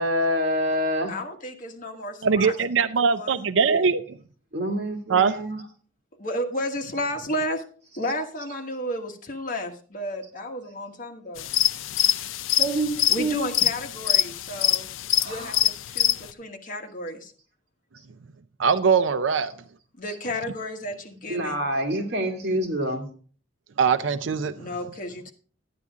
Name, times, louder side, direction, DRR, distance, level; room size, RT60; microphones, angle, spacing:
voice 1, 0.0-1.2 4.5-5.6 12.6-13.5 15.2-15.6 19.4-19.5 20.1-20.2 21.3-23.0, equal, 55° right, 2.3 m, -27 dB
voice 2, 1.1-2.5 3.0-3.4 6.2-7.6 8.0-11.5 13.1-14.9 15.2-17.3 20.0-21.6 24.6-25.3, left 1 dB, 45° left, 1.5 m, -32 dB
voice 3, 2.2-4.0 5.1-5.4 18.6-19.5 23.8-24.5, right 5 dB, 75° right, 0.5 m, -21 dB
sound 1, 11.4-16.3, left 13 dB, 85° left, 0.5 m, -24 dB
12.0 x 9.4 x 3.6 m
head